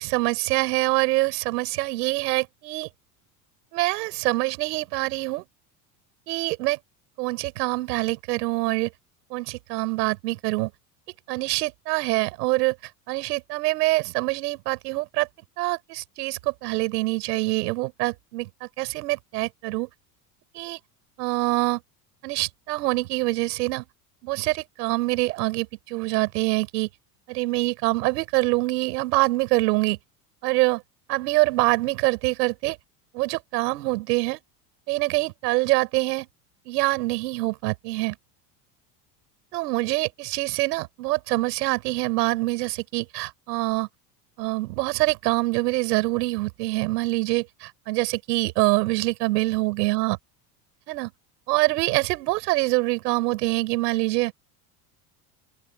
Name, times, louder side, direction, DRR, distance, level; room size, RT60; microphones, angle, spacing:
voice 1, 0.0-2.9 3.7-5.4 6.3-6.8 7.2-8.9 9.3-10.7 11.3-12.7 13.1-15.3 15.6-18.5 18.8-19.9 20.5-20.8 21.2-21.8 22.2-23.8 24.2-26.9 27.3-30.0 30.4-30.8 31.1-32.8 33.1-34.4 34.9-36.3 36.7-38.2 39.5-43.9 44.4-50.2 50.9-51.1 51.5-54.3, right 21 dB, 75° right, 7.1 m, -25 dB
open air
supercardioid pair, 95°, 48 cm